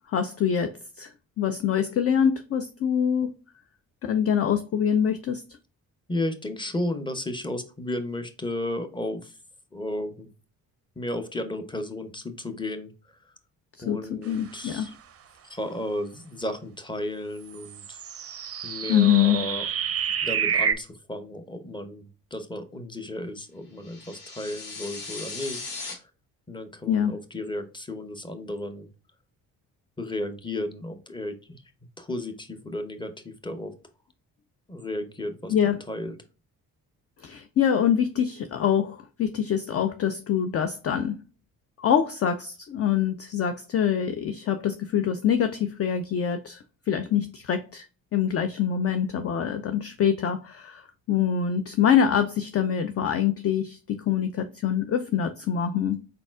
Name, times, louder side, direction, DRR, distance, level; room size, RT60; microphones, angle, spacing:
voice 1, 0.1-1.1 1.4-3.3 4.0-5.4 13.9-14.9 18.9-19.4 26.9-27.2 35.5-35.8 37.2-41.2 41.8-47.9 48.1-50.8 51.1-56.0, left 8 dB, 35° left, 0.4 m, -25 dB
voice 2, 6.1-9.3 9.7-10.3 11.0-12.9 13.8-14.9 15.5-18.0 18.6-19.7 20.2-25.7 26.5-28.9 30.0-31.6 32.0-33.7 34.7-36.2, left 1 dB, 10° left, 0.8 m, -33 dB
sound 1, 17.5-20.7, right 7 dB, 30° right, 0.5 m, -28 dB
sound 2, 23.8-25.9, left 3 dB, 85° left, 1.1 m, -37 dB
4.1 x 4.0 x 2.4 m
hypercardioid pair, 40°, 46 cm